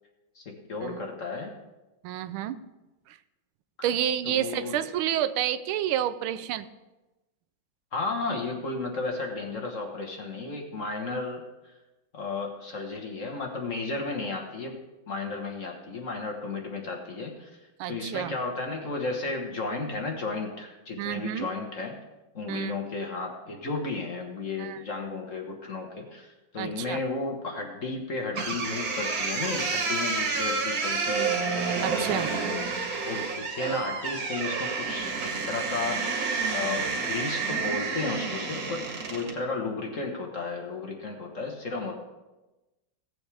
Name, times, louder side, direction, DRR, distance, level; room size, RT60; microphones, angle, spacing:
voice 1, 0.3-1.5 4.3-4.8 7.9-11.4 12.1-14.8 15.1-17.5 17.9-22.0 22.3-31.6 31.8-32.3 33.0-41.9, left 3 dB, 45° left, 1 dB, 1.4 m, -33 dB
voice 2, 2.0-2.6 3.1-3.2 3.8-6.7 17.8-18.4 21.0-21.5 22.5-22.8 24.6-24.8 26.6-27.0 31.8-32.3, right 11 dB, 85° right, 12 dB, 1.5 m, -29 dB
sound 1, 28.3-39.4, right 4 dB, 70° right, 2.3 m, -29 dB
17.0 x 7.9 x 3.4 m, 1.1 s
omnidirectional pair, 2.3 m